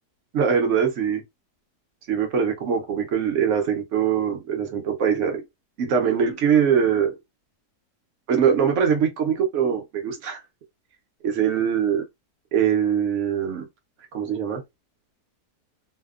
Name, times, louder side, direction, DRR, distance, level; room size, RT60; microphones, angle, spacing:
voice 1, 0.3-1.2 2.1-5.4 5.8-7.1 8.3-10.4 11.2-12.0 12.5-13.7 14.1-14.6, right 7 dB, 60° right, 0.8 m, -22 dB
2.7 x 2.0 x 2.3 m
omnidirectional pair, 1.7 m